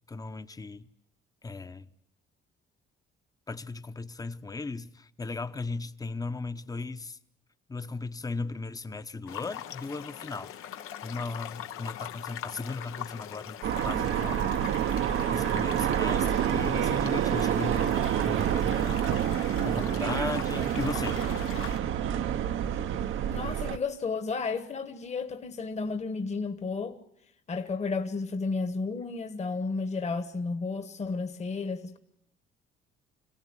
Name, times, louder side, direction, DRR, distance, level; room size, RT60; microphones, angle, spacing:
voice 1, 0.1-0.9 1.4-1.9 3.5-7.2 7.7-10.5 11.0-13.6 13.8-14.6 15.3-19.0 19.6-21.2, left 3 dB, 15° left, 0.9 m, -37 dB
sound 1, 9.3-21.8, left 11 dB, 85° left, 1.2 m, -42 dB
sound 2, 13.6-23.8, right 10 dB, 70° right, 1.0 m, -28 dB
voice 2, 23.3-27.0 27.5-32.0, left 4 dB, 30° left, 1.3 m, -32 dB
26.5 x 17.0 x 9.7 m
cardioid pair, 120°, 21 cm